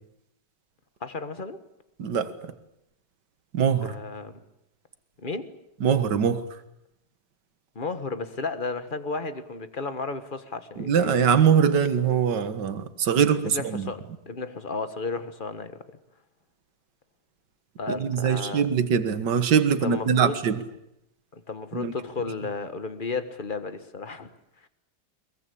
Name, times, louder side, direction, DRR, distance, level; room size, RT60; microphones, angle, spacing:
voice 1, 1.0-1.6 3.8-4.3 5.2-5.6 7.7-11.1 13.4-15.8 17.8-18.6 19.8-20.4 21.3-24.3, left 3 dB, 30° left, 11 dB, 1.4 m, -33 dB
voice 2, 2.0-2.5 3.5-3.9 5.8-6.6 10.8-13.9 17.9-20.6 21.7-21.9, right 7 dB, 60° right, 11 dB, 2.1 m, -23 dB
22.5 x 22.0 x 8.5 m, 0.83 s
omnidirectional pair, 2.1 m